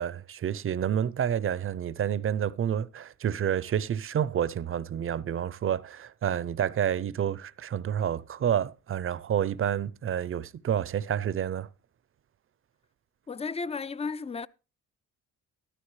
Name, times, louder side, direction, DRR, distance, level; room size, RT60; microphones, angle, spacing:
voice 1, 0.0-11.7, right 9 dB, 45° right, 0.6 m, -29 dB
voice 2, 13.3-14.5, left 4 dB, 20° left, 0.5 m, -33 dB
13.5 x 12.5 x 3.2 m
cardioid pair, 90°, 30 cm